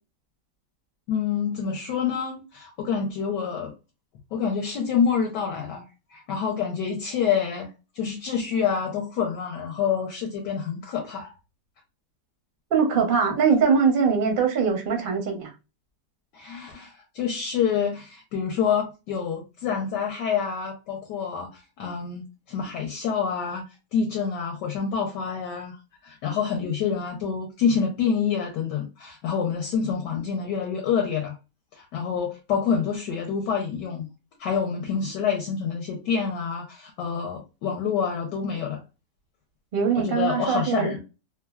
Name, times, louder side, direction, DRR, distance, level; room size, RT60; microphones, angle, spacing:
voice 1, 1.1-3.7 4.3-7.7 7.9-11.3 16.3-23.6 23.9-25.8 26.0-31.4 31.7-34.1 34.4-38.8 40.0-41.0, left 6 dB, 70° left, 1.2 m, -27 dB
voice 2, 12.7-15.5 39.7-40.9, right 6 dB, 60° right, 0.5 m, -22 dB
3.1 x 2.3 x 2.2 m
omnidirectional pair, 2.0 m